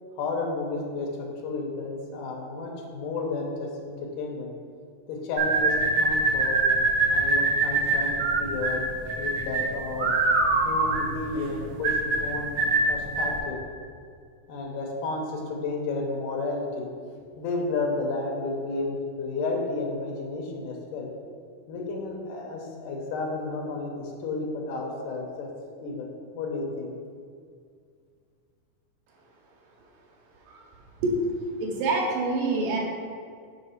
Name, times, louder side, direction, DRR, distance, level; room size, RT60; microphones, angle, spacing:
voice 1, 0.1-4.5 5.1-5.7 6.0-6.6 7.1-8.1 8.4-8.8 9.2-10.1 10.6-12.5 12.9-13.6 14.5-16.9 17.4-21.1 21.7-25.5 25.8-26.9, left 3 dB, 80° left, 0 dB, 2.5 m, -32 dB
sound 1, 5.4-13.4, right 3 dB, 65° right, 1.8 m, -24 dB
voice 2, 31.6-32.8, right 3 dB, 85° right, -2 dB, 2.7 m, -25 dB
5.9 x 4.1 x 5.7 m, 2.2 s
omnidirectional pair, 3.8 m